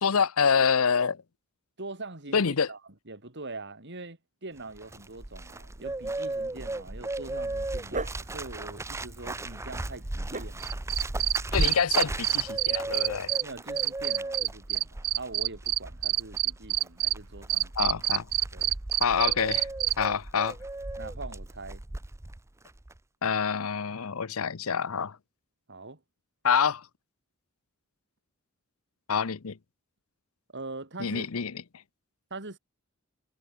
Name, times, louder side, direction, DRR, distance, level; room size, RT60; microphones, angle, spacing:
voice 1, 0.0-1.2 2.3-2.7 11.5-13.3 17.8-18.3 19.0-19.7 20.0-20.5 23.2-25.2 26.4-26.8 29.1-29.6 31.0-31.6, left 6 dB, 70° left, 0.8 m, -26 dB
voice 2, 1.8-2.8 3.1-10.7 13.4-17.7 18.5-18.7 20.0-20.2 21.0-21.8 25.7-26.0 30.5-31.3 32.3-32.6, right 2 dB, 55° right, 3.7 m, -43 dB
Bird, 4.6-22.4 22.6-23.0, right 2 dB, 15° right, 0.6 m, -36 dB
Dog, 7.4-13.3, right 2 dB, 35° right, 3.7 m, -42 dB
Cricket, 10.6-13.4 13.8-17.1 17.5-19.9, right 15 dB, 75° right, 1.0 m, -26 dB
head